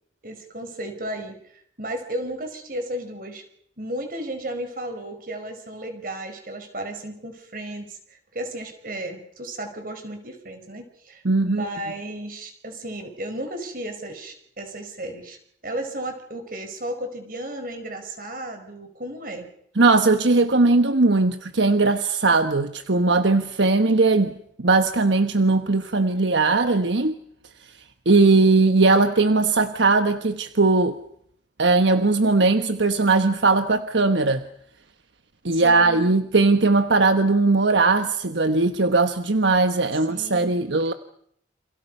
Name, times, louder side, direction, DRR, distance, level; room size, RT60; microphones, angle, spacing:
voice 1, 0.2-1.4 1.8-3.4 3.8-15.4 15.6-19.5 35.5-36.1 40.1-40.5, right 1 dB, 50° right, 5.1 m, -34 dB
voice 2, 11.2-11.7 19.8-27.2 27.6-27.7 28.0-31.0 31.6-34.5 35.4-40.9, right 3 dB, 80° right, 1.2 m, -19 dB
29.0 x 27.5 x 5.5 m
head